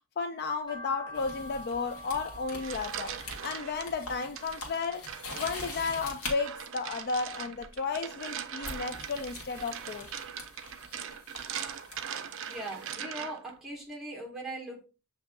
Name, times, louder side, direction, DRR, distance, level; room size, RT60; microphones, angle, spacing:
voice 1, 0.2-3.1 3.4-5.0 5.3-10.1, left 4 dB, 45° left, 0.4 m, -33 dB
sound 1, 0.7-7.0 7.3-8.5 8.8-10.3 10.6-10.7 11.2-11.3 11.5-11.6, left 1 dB, 20° left, 1.0 m, -49 dB
sound 2, 1.1-6.4 7.6-7.9 8.6-12.9, left 2 dB, 70° left, 1.2 m, -44 dB
sound 3, 2.3-3.9 4.4-13.5, right 8 dB, 60° right, 0.5 m, -41 dB
voice 2, 12.5-14.9, right 2 dB, ahead, 1.4 m, -40 dB
6.9 x 2.7 x 2.2 m
head